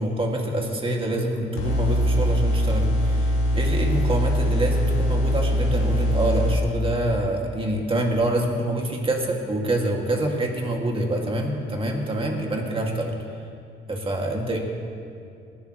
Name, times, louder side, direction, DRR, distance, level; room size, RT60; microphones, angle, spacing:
voice 1, 0.0-13.2 13.9-14.6, right 1 dB, 25° right, 0 dB, 2.2 m, -26 dB
sound 1, 1.6-6.6, equal, 85° left, 1.9 m, -22 dB
19.5 x 11.5 x 3.1 m, 2.4 s
cardioid pair, 90°, 20 cm